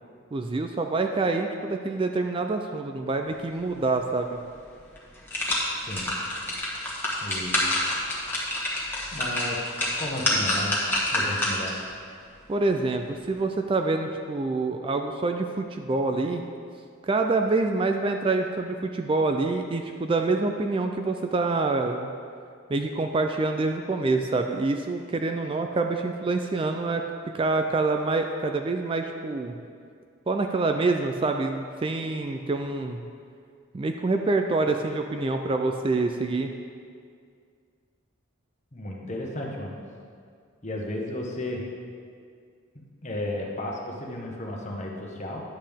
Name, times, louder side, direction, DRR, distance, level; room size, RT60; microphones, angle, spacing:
voice 1, 0.3-4.4 12.5-16.4 17.1-22.1 22.7-27.0 27.3-29.5 30.3-33.0 33.7-36.5, right 3 dB, 25° right, 5 dB, 0.3 m, -26 dB
sound 1, 4.4-4.5 5.0-11.8 12.3-12.4, left 1 dB, 10° left, 1.4 m, -27 dB
voice 2, 7.2-7.6 9.1-9.6 10.0-10.8 11.1-11.7 38.7-39.8 40.6-41.7 43.0-45.4, left 1 dB, 35° left, -1 dB, 1.1 m, -33 dB
10.0 x 7.6 x 3.5 m, 2.2 s
head